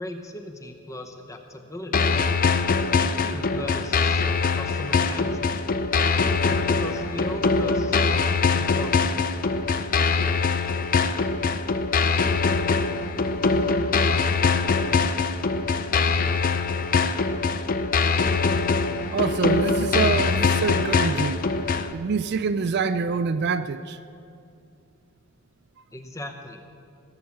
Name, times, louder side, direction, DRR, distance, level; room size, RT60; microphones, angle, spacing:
voice 1, 0.0-2.1 2.9-4.2 4.5-5.6 6.4-9.3 25.9-26.6, left 1 dB, 15° left, 0.9 m, -38 dB
sound 1, 1.9-21.9, left 4 dB, 40° left, 0.5 m, -23 dB
voice 2, 19.1-24.0, right 5 dB, 50° right, 0.4 m, -26 dB
18.0 x 7.1 x 7.5 m
head